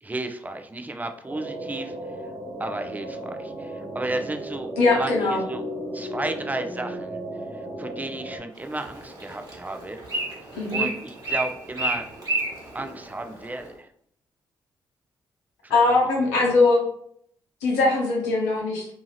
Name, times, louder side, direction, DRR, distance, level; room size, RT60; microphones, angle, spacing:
voice 1, 0.0-1.9 2.6-5.6 5.9-7.2 7.5-10.0 10.7-12.1 12.7-13.9 15.6-16.1, right 2 dB, 15° right, 6 dB, 0.5 m, -33 dB
sound 1, 1.3-8.4, right 1 dB, 85° right, 1.1 m, -35 dB
voice 2, 4.8-5.4 10.6-10.9 15.7-16.8 17.6-18.9, left 3 dB, 85° left, -2 dB, 0.8 m, -21 dB
Bird, 8.5-13.7, right 2 dB, 35° right, 1.4 m, -32 dB
2.7 x 2.3 x 3.1 m, 0.65 s
hypercardioid pair, 40°, 11 cm